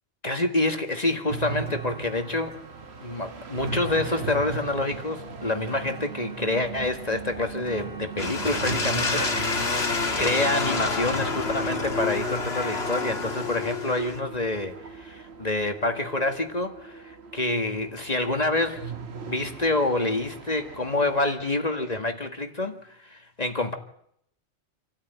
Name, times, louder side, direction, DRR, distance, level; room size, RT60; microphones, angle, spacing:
voice 1, 0.2-2.6 3.0-9.9 10.2-23.7, left 2 dB, 35° left, 1.8 m, -27 dB
sound 1, 0.9-1.0 1.4-14.5 15.3-15.4, right 2 dB, 40° right, 2.4 m, -49 dB
sound 2, 1.3-21.2, right 5 dB, 65° right, 1.6 m, -39 dB
sound 3, 8.2-14.2, left 3 dB, 65° left, 2.0 m, -28 dB
27.0 x 13.5 x 9.2 m
omnidirectional pair, 1.2 m